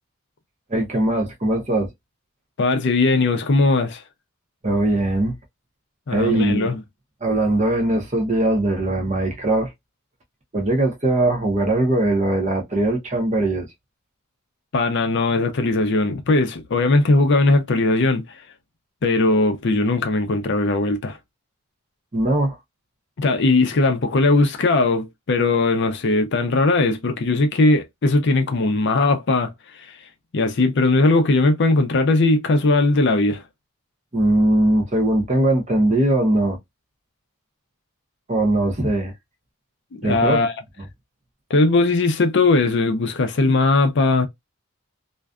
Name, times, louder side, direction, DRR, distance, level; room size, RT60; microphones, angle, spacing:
voice 1, 0.7-1.9 4.6-5.4 6.1-6.7 7.2-9.7 10.5-13.7 22.1-22.5 34.1-36.6 38.3-39.1 40.0-40.4, right 1 dB, 30° right, 0.7 m, -20 dB
voice 2, 2.6-4.0 6.1-6.8 14.7-18.2 19.0-21.2 23.2-30.0 30.3-33.4 40.0-40.5 41.5-44.3, left 2 dB, 50° left, 0.5 m, -19 dB
2.5 x 2.3 x 2.3 m
head